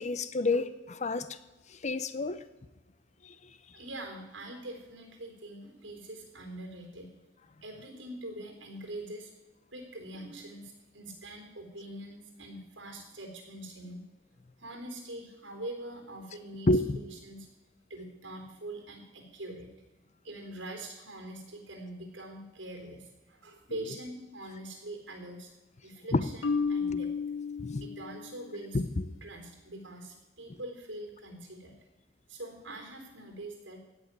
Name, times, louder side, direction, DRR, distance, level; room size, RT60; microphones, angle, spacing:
voice 1, 0.0-1.4 1.7-2.4 3.2-3.3 16.7-17.0 26.1-26.2 27.6-27.8 28.7-29.0, left 2 dB, 40° left, 14 dB, 0.6 m, -29 dB
voice 2, 3.7-7.1 7.6-9.3 9.7-14.0 14.6-16.8 17.1-17.5 17.9-19.7 20.2-25.5 25.8-26.4 26.7-27.1 27.8-28.8 29.2-31.8 32.3-33.8, right 1 dB, 75° right, 4 dB, 3.6 m, -43 dB
Marimba xylophone, 26.4-28.5, left 5 dB, 90° left, 0.7 m, -32 dB
16.5 x 6.3 x 9.4 m, 1.0 s
head